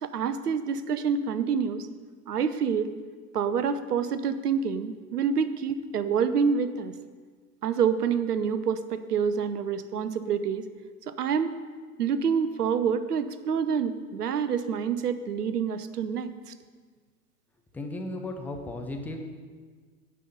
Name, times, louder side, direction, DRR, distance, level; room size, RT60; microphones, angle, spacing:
voice 1, 0.0-1.9 2.3-2.9 3.3-6.9 7.6-10.7 11.1-11.5 12.0-16.5, right 6 dB, 75° right, 12 dB, 0.8 m, -27 dB
voice 2, 17.7-19.2, left 2 dB, 5° left, 3 dB, 0.5 m, -35 dB
9.9 x 5.6 x 6.6 m, 1.5 s
figure-of-eight pair, 100°, 46 cm